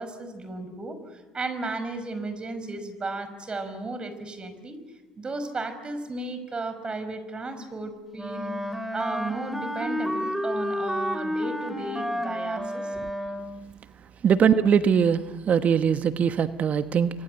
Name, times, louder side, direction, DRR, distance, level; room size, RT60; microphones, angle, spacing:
voice 1, 0.0-4.8 5.2-12.9, right 2 dB, 30° right, 10 dB, 5.7 m, -34 dB
Wind instrument woodwind instrument, 8.1-13.7, equal, 5° right, 3.5 m, -30 dB
voice 2, 14.2-17.1, right 7 dB, 45° right, 11 dB, 1.2 m, -21 dB
29.5 x 24.0 x 8.2 m, 1.2 s
hypercardioid pair, 65°, 3 cm